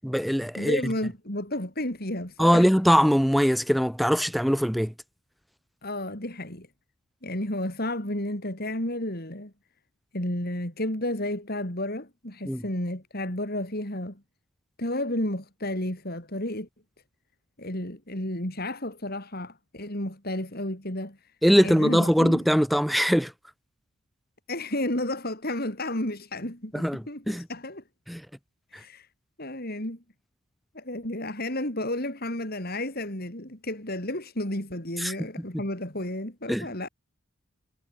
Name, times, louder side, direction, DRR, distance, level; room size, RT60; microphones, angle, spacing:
voice 1, 0.0-0.8 2.4-4.9 12.5-12.6 21.4-23.3 26.7-27.5 28.1-28.2 35.0-35.1 36.5-36.7, equal, ahead, 0.8 m, -22 dB
voice 2, 0.5-2.7 5.8-6.7 7.2-9.5 10.1-14.2 14.8-16.7 17.6-21.3 21.6-22.4 24.5-27.8 28.7-29.1 29.4-30.0 30.7-36.9, left 1 dB, 45° left, 4.8 m, -32 dB
head